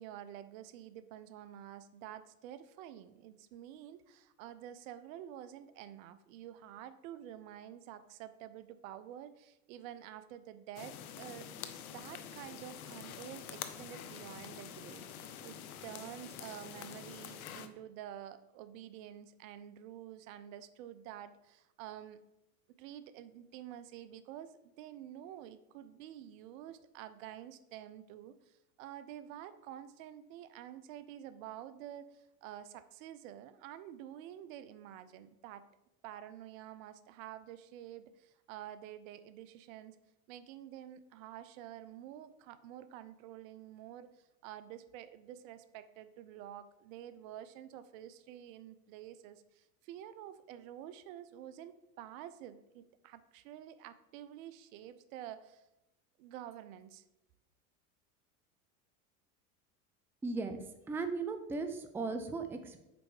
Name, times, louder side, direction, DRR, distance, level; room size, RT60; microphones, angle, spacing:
voice 1, 0.0-22.2 22.8-35.7 36.0-40.0 40.3-55.6 56.2-57.0, right 11 dB, 65° right, 13 dB, 0.6 m, -49 dB
sound 1, 10.7-17.7, left 9 dB, 85° left, 0.7 m, -47 dB
voice 2, 60.2-62.8, right 3 dB, 5° right, 8 dB, 0.4 m, -37 dB
5.2 x 4.4 x 4.7 m, 0.93 s
hypercardioid pair, 90°, 42 cm